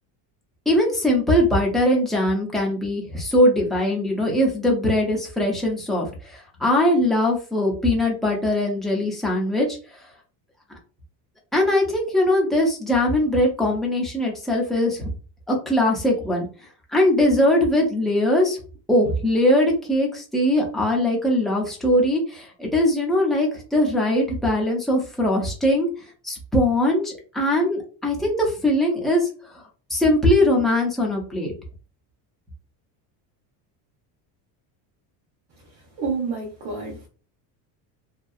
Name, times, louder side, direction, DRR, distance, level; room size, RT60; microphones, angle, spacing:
voice 1, 0.7-9.7 10.7-10.8 11.5-15.1 15.5-16.5 16.9-18.6 18.9-25.9 26.2-29.6 29.9-31.5, left 1 dB, ahead, 0.4 m, -21 dB
voice 2, 36.0-37.1, right 4 dB, 70° right, 1.1 m, -28 dB
2.7 x 2.3 x 2.3 m
cardioid pair, 150°, 45 cm